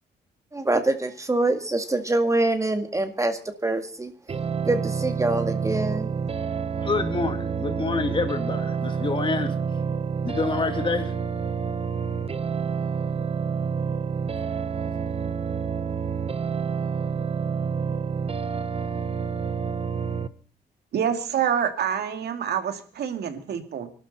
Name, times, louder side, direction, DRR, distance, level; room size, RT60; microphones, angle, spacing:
voice 1, 0.5-4.1 4.7-6.1, right 2 dB, 20° right, 7 dB, 1.8 m, -25 dB
sound 1, 4.3-20.3, right 6 dB, 35° right, 0.9 m, -28 dB
voice 2, 6.8-9.6 10.2-11.1, left 3 dB, 30° left, 5 dB, 2.9 m, -27 dB
voice 3, 20.9-23.9, right 8 dB, 70° right, 7 dB, 2.5 m, -27 dB
24.5 x 12.5 x 4.2 m, 0.43 s
cardioid pair, 105°, 17 cm